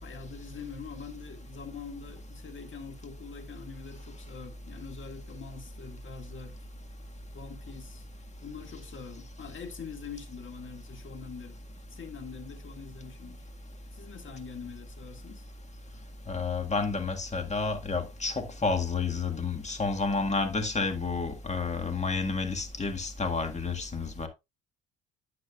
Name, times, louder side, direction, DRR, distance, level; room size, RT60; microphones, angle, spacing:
voice 1, 0.0-6.6 7.3-8.1 8.4-11.6 11.9-13.4 13.9-15.5, left 5 dB, 40° left, 2.1 m, -44 dB
voice 2, 16.3-24.3, left 4 dB, 25° left, 1.8 m, -30 dB
9.7 x 7.8 x 2.4 m
supercardioid pair, 70°, 30 cm